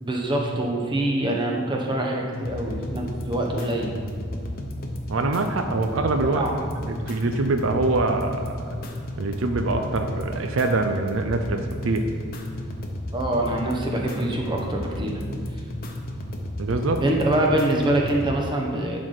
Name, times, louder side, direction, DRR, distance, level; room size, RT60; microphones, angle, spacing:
voice 1, 0.0-3.9 6.2-6.5 13.1-15.2 17.0-19.0, right 1 dB, 20° right, 0 dB, 0.9 m, -25 dB
sound 1, 2.3-18.3, left 1 dB, 45° left, 0.8 m, -33 dB
voice 2, 5.1-6.4 6.9-8.5 9.2-12.1 16.6-17.0, right 3 dB, 70° right, 5 dB, 0.5 m, -24 dB
11.5 x 4.2 x 4.9 m, 2.1 s
head